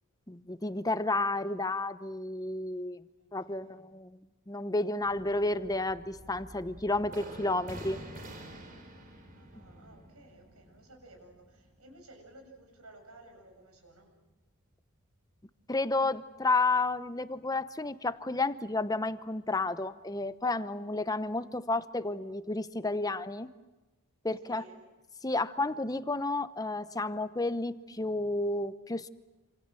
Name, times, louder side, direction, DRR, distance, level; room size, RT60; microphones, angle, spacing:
voice 1, 0.3-3.0 3.3-4.2 4.5-8.0 15.7-23.5 24.2-24.6 25.2-29.1, left 2 dB, 15° left, 13 dB, 0.9 m, -31 dB
voice 2, 3.2-3.9 9.3-14.2 24.4-24.8, right 1 dB, 80° right, 3 dB, 7.5 m, -55 dB
sound 1, 5.0-14.3 14.6-14.7 15.0-15.2, right 1 dB, 35° right, 4.3 m, -49 dB
27.5 x 26.5 x 7.7 m, 1.1 s
head